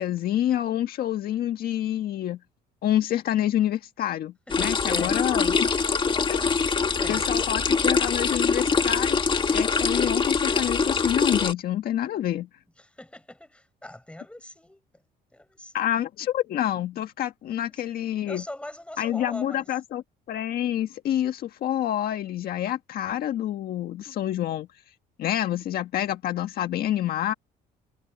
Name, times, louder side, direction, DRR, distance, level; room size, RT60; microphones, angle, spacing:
voice 1, 0.0-2.4 2.8-5.7 6.3-6.4 7.1-9.2 9.5-12.5 15.7-18.4 19.0-20.0 20.3-24.7 25.2-27.3, left 12 dB, 65° left, 1.6 m, -27 dB
sound 1, 4.5-11.5, left 5 dB, 30° left, 2.0 m, -24 dB
voice 2, 4.5-5.2 7.0-7.2 12.8-15.0 15.3-16.0 17.5-17.9 18.3-19.8, left 1 dB, 5° left, 7.1 m, -42 dB
cardioid pair, 110°, 17 cm